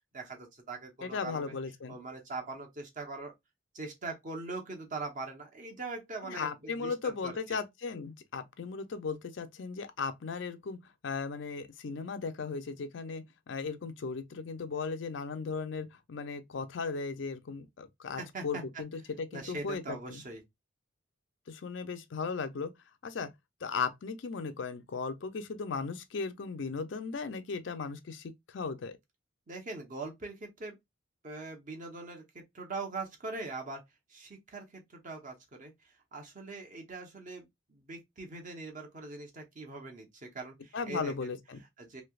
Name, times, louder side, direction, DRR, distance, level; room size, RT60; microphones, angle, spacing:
voice 1, 0.1-1.5 1.9-3.3 3.7-7.6 18.2-18.8 19.3-20.4 29.5-30.8 31.2-33.8 34.1-41.4 41.8-42.0, right 3 dB, 40° right, 0.9 m, -42 dB
voice 2, 1.0-1.9 6.3-10.8 11.0-18.9 19.2-20.2 21.5-22.7 23.0-23.3 23.6-29.0 40.7-41.6, left 4 dB, 60° left, 0.5 m, -37 dB
3.2 x 2.8 x 2.3 m
head